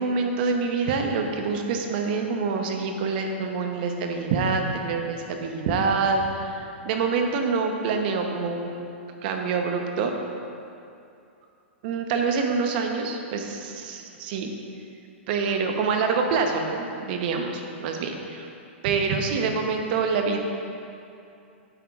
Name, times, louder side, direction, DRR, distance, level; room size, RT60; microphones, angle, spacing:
voice 1, 0.0-8.9 9.2-10.1 11.8-14.5 15.3-18.5 18.8-20.4, right 4 dB, 50° right, 4 dB, 0.9 m, -26 dB
9.3 x 8.0 x 2.4 m, 2.6 s
hypercardioid pair, 135°, 7 cm